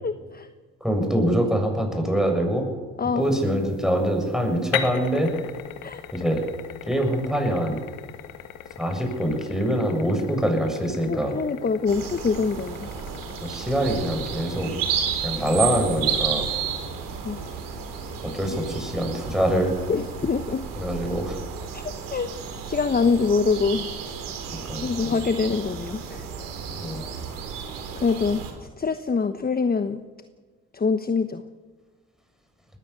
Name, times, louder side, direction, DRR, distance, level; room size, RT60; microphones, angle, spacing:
voice 1, 0.0-0.5 3.0-3.4 5.8-6.0 11.1-12.9 17.2-17.6 19.9-20.6 21.7-21.8 22.1-22.3 22.6-23.9 24.8-26.3 28.0-30.0 30.7-31.4, left 5 dB, 25° left, 10 dB, 1.2 m, -25 dB
voice 2, 0.8-2.7 3.2-5.3 6.1-6.4 6.8-7.8 8.8-11.3 13.4-14.7 15.2-16.5 18.2-19.8 20.8-21.4 24.5-25.2 26.8-27.0, equal, ahead, 2 dB, 7.5 m, -24 dB
sound 1, 3.2-20.1, left 10 dB, 70° left, 2.0 m, -40 dB
sound 2, 11.9-28.5, right 7 dB, 70° right, 4.2 m, -32 dB
20.0 x 15.5 x 8.5 m, 1.4 s
hypercardioid pair, 60°, 34 cm